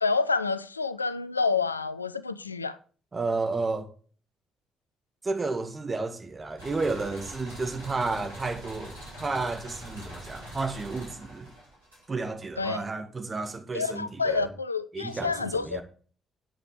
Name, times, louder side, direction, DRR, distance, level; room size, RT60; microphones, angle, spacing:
voice 1, 0.0-2.8 12.6-12.8 13.7-15.8, left 4 dB, 85° left, 0.4 m, -28 dB
voice 2, 3.1-3.9 5.2-11.5 12.1-14.5 14.9-15.8, right 3 dB, 30° right, 1.9 m, -32 dB
sound 1, 6.6-12.4, equal, 85° right, 4.2 m, -43 dB
8.6 x 8.5 x 4.9 m
figure-of-eight pair, 40°, 0 cm